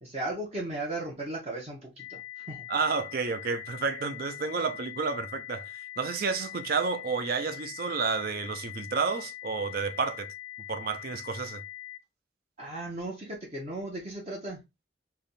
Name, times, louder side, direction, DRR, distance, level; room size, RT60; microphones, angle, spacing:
voice 1, 0.0-2.6 12.6-14.6, right 2 dB, 35° right, 0.9 m, -36 dB
sound 1, 2.0-12.0, left 15 dB, 85° left, 0.6 m, -43 dB
voice 2, 2.7-10.3 10.7-11.6, right 4 dB, 55° right, 0.5 m, -30 dB
3.4 x 2.3 x 3.9 m
head